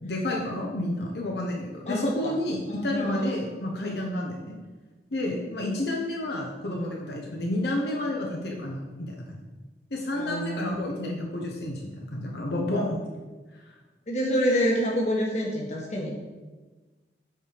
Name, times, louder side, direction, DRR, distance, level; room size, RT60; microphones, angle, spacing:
voice 1, 0.0-4.6 5.1-9.4 9.9-13.1, left 1 dB, 70° left, 0 dB, 1.0 m, -30 dB
voice 2, 1.9-2.4 2.7-3.4 4.1-4.3 10.1-10.7 14.1-16.2, equal, 40° left, -1 dB, 1.4 m, -27 dB
8.1 x 4.8 x 5.1 m, 1.2 s
head